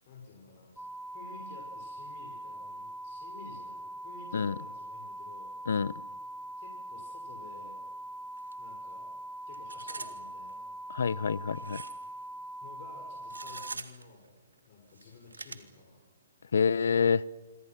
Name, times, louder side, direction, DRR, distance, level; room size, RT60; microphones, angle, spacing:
voice 1, 0.1-0.9 1.1-5.5 6.6-7.9 8.6-9.1 9.5-10.7 12.6-14.4 14.7-16.0, left 4 dB, 50° left, 5.6 m, -52 dB
sound 1, 0.8-13.8, right 1 dB, ahead, 0.7 m, -42 dB
sound 2, 8.4-8.5 8.8-8.9 9.5-10.1 10.5-10.6 11.5-12.0 13.2-14.0 14.9-15.5, right 3 dB, 90° right, 2.0 m, -42 dB
voice 2, 10.9-11.8 16.5-17.2, left 6 dB, 70° left, 0.8 m, -27 dB
27.0 x 23.5 x 6.1 m
hypercardioid pair, 135°, 0 cm